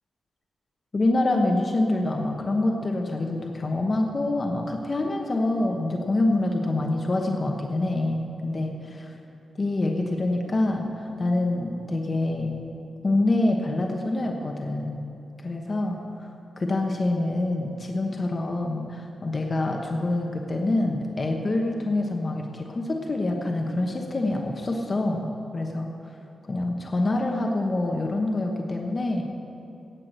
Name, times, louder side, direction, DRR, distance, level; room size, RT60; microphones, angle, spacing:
voice 1, 0.9-9.1 9.6-12.6 13.0-15.0 15.4-16.3 16.6-25.9 26.5-29.2, left 2 dB, 30° left, 1 dB, 1.0 m, -26 dB
17.0 x 5.9 x 8.0 m, 2.9 s
wide cardioid pair, 165°, 0 cm